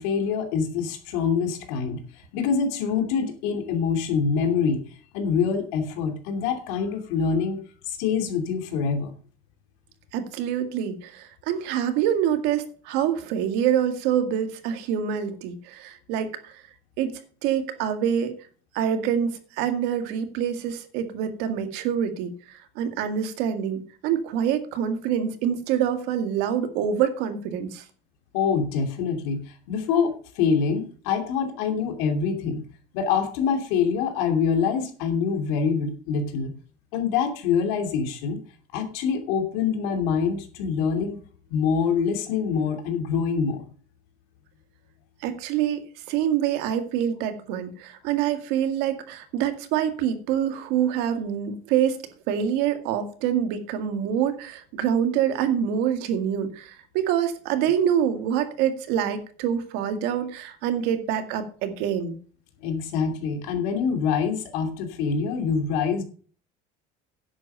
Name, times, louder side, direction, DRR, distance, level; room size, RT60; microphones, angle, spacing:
voice 1, 0.0-7.6 7.9-9.1 28.3-32.6 32.9-36.5 36.9-38.4 38.7-41.2 41.5-43.6 62.6-66.0, left 6 dB, 90° left, 5 dB, 2.8 m, -25 dB
voice 2, 10.1-16.6 17.0-17.1 17.4-18.3 18.7-27.9 45.2-52.0 52.3-62.2, right 9 dB, 80° right, 8 dB, 2.0 m, -26 dB
11.0 x 8.1 x 5.6 m, 0.42 s
cardioid pair, 160°, 17 cm